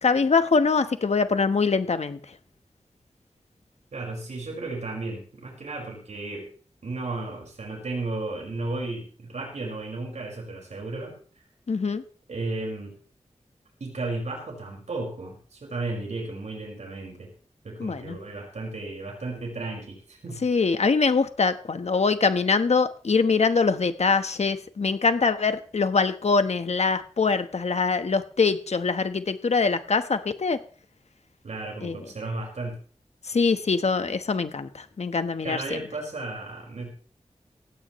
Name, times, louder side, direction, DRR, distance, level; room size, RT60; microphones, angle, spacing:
voice 1, 0.0-2.2 11.7-12.0 17.8-18.2 20.4-30.6 31.8-32.0 33.3-35.8, left 4 dB, 70° left, 10 dB, 1.3 m, -23 dB
voice 2, 3.9-6.5 6.8-11.1 12.3-13.0 13.8-17.3 17.6-20.4 31.4-32.8 35.4-36.9, right 2 dB, 85° right, 0 dB, 5.4 m, -34 dB
17.5 x 16.0 x 3.2 m, 0.42 s
wide cardioid pair, 80°, 12 cm